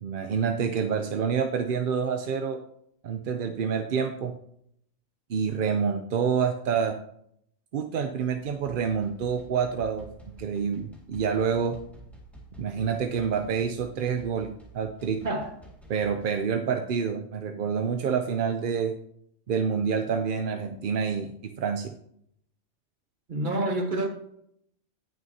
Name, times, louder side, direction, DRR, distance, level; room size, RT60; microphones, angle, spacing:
voice 1, 0.0-2.6 3.0-4.3 5.3-7.0 7.7-10.1 10.4-11.8 12.6-15.2 15.9-18.9 19.5-21.3 21.6-21.9, right 6 dB, 55° right, 0.6 m, -27 dB
sound 1, 8.4-16.5, right 2 dB, ahead, 1.9 m, -50 dB
voice 2, 15.2-15.5 23.3-24.1, right 2 dB, 40° right, 1.4 m, -27 dB
17.5 x 6.4 x 2.7 m
omnidirectional pair, 1.3 m